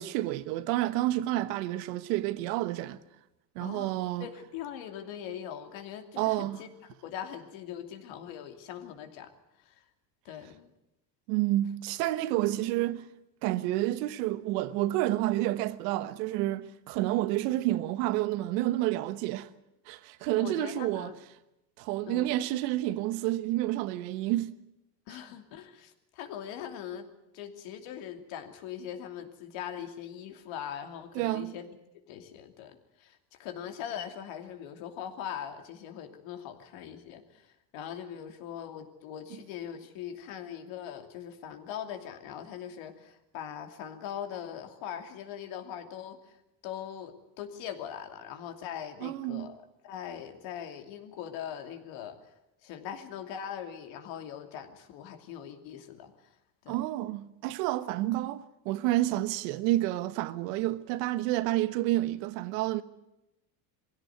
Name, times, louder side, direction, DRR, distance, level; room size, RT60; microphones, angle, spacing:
voice 1, 0.0-3.0 3.5-4.3 6.2-6.6 11.3-13.1 13.4-19.5 19.9-21.1 21.8-24.5 31.1-31.5 49.0-49.5 56.7-62.8, right 15 dB, 85° right, 1.3 m, -29 dB
voice 2, 3.6-6.7 7.0-9.3 9.6-9.8 10.2-10.7 20.3-21.2 22.0-22.3 25.1-27.1 27.3-31.7 32.1-46.4 46.6-52.3 52.6-56.4 56.6-56.8, left 9 dB, 70° left, 2.9 m, -41 dB
21.5 x 16.5 x 9.5 m
supercardioid pair, 120°, 47 cm